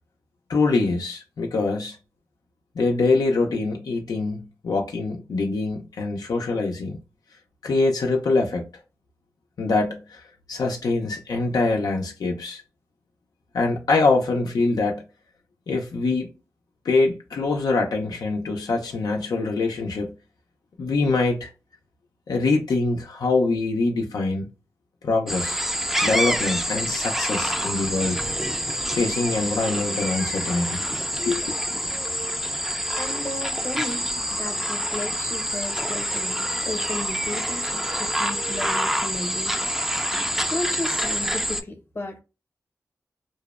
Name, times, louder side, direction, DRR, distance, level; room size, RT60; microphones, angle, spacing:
voice 1, 0.5-2.0 2.8-7.0 7.6-8.7 9.6-10.2 10.5-12.6 13.5-15.0 15.7-16.3 16.9-20.1 20.8-21.5 22.3-24.5 25.0-25.6 26.0-28.2 28.9-30.8 31.2-31.4, left 3 dB, 85° left, 0.4 m, -24 dB
sound 1, 25.3-41.6, equal, 5° right, 0.3 m, -27 dB
voice 2, 33.0-34.0 34.4-39.7 40.0-42.2, left 2 dB, 35° left, 0.7 m, -34 dB
2.6 x 2.0 x 2.3 m
cardioid pair, 60°, 6 cm